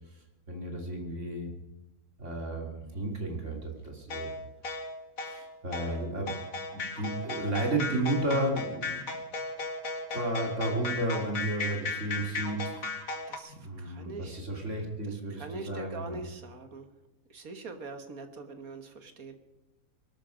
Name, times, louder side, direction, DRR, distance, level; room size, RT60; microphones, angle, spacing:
voice 1, 0.1-1.5 2.2-4.4 5.2-6.3 6.7-9.1 10.1-12.8 13.5-16.2, right 1 dB, 50° right, 2 dB, 3.0 m, -33 dB
sound 1, 4.1-13.4, left 3 dB, 60° left, 2.3 m, -36 dB
voice 2, 13.3-14.4 15.0-16.9 17.3-19.3, right 3 dB, 65° right, 7 dB, 1.8 m, -43 dB
22.0 x 12.5 x 5.1 m, 1.0 s
omnidirectional pair, 1.6 m